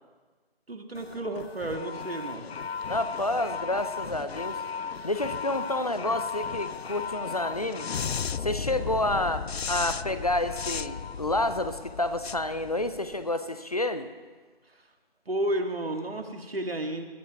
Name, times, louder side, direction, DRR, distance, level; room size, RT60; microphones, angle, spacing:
voice 1, 0.7-2.5 15.3-17.0, right 1 dB, 70° right, 5 dB, 1.8 m, -32 dB
sound 1, 0.9-13.3, left 6 dB, 90° left, 0.5 m, -35 dB
voice 2, 2.9-4.6 5.0-7.9 8.4-14.1, left 1 dB, 40° left, 10 dB, 0.6 m, -29 dB
21.0 x 8.6 x 4.7 m, 1.4 s
figure-of-eight pair, 165°, 30 cm